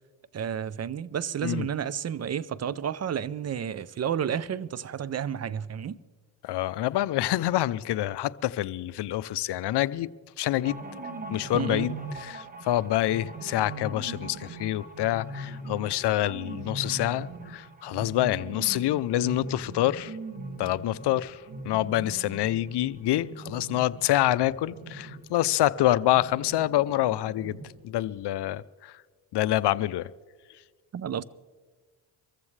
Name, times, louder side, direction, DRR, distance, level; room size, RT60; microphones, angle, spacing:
voice 1, 0.3-6.0 11.5-11.9 30.9-31.2, right 8 dB, 35° right, 0.5 m, -31 dB
voice 2, 6.4-10.1 10.4-10.8 11.3-20.2 20.6-27.6 27.8-28.9 29.3-30.1, left 14 dB, 60° left, 0.6 m, -27 dB
sound 1, 10.6-23.7 24.0-24.1 24.4-25.2, right 2 dB, 20° right, 1.2 m, -48 dB
sound 2, 10.6-25.3 26.0-27.9, right 2 dB, 50° right, 2.6 m, -41 dB
24.0 x 14.5 x 3.3 m
cardioid pair, 75°, 46 cm